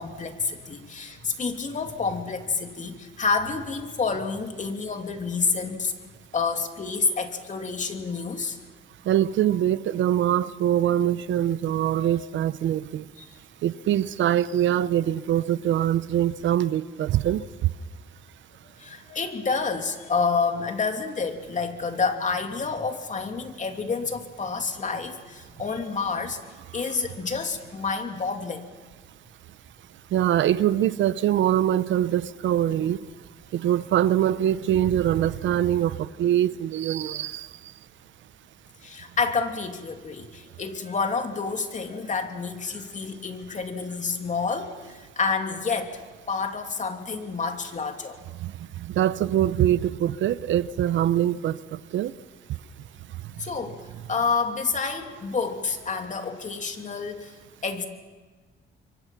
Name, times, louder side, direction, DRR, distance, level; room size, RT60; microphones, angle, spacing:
voice 1, 0.0-5.9 6.3-8.6 11.9-12.1 13.2-13.3 18.6-26.4 26.7-28.6 38.8-46.0 46.3-48.2 53.4-57.3 57.6-57.9, left 4 dB, 40° left, 2.8 m, -29 dB
voice 2, 9.1-13.0 13.6-17.4 30.1-33.0 33.5-37.5 48.4-48.5 48.8-51.6 51.9-52.1, right 11 dB, 70° right, 0.7 m, -23 dB
26.5 x 24.0 x 6.0 m
cardioid pair, 90°, 20 cm